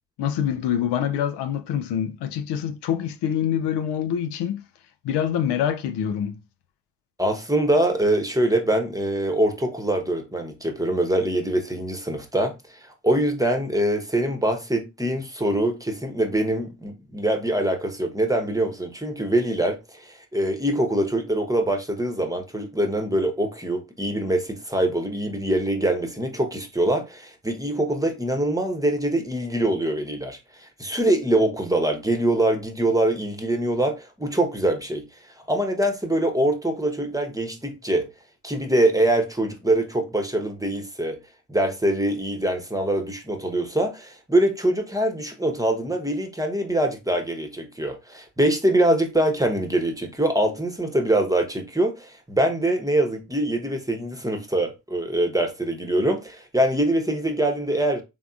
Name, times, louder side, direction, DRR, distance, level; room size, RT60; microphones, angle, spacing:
voice 1, 0.2-4.7 5.0-6.4, left 9 dB, 60° left, 0.6 m, -25 dB
voice 2, 7.2-12.6 13.0-35.0 35.5-38.1 38.4-41.2 41.5-58.0, right 1 dB, 10° right, 1.0 m, -24 dB
3.7 x 3.5 x 2.4 m
hypercardioid pair, 40°, 45 cm